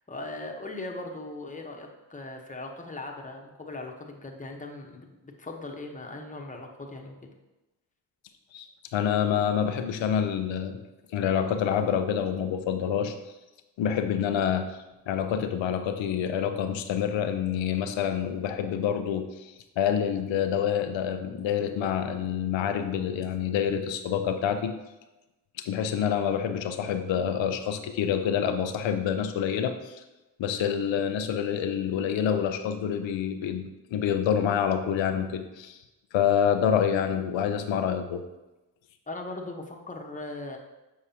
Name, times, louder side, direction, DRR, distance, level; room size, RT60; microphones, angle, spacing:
voice 1, 0.0-7.2 39.1-40.6, left 2 dB, 15° left, 1 dB, 1.0 m, -39 dB
voice 2, 8.9-10.8 11.1-13.1 13.8-14.8 15.1-24.7 25.6-30.0 30.4-35.8 36.1-38.2, left 8 dB, 90° left, 8 dB, 0.6 m, -27 dB
7.2 x 4.7 x 2.9 m, 1.0 s
cardioid pair, 50°, 44 cm